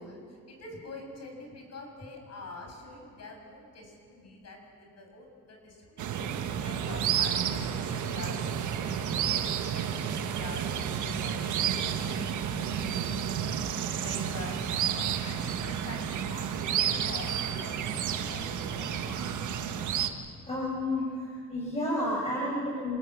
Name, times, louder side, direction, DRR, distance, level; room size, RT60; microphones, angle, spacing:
voice 1, 0.0-9.2 9.7-13.3 13.9-19.4, left 2 dB, 60° left, 2 dB, 7.0 m, -46 dB
sound 1, 6.0-20.1, right 8 dB, 75° right, 1.5 m, -31 dB
voice 2, 20.4-23.0, left 1 dB, 20° left, -5 dB, 6.8 m, -31 dB
26.5 x 19.5 x 7.5 m, 2.2 s
cardioid pair, 90°, 30 cm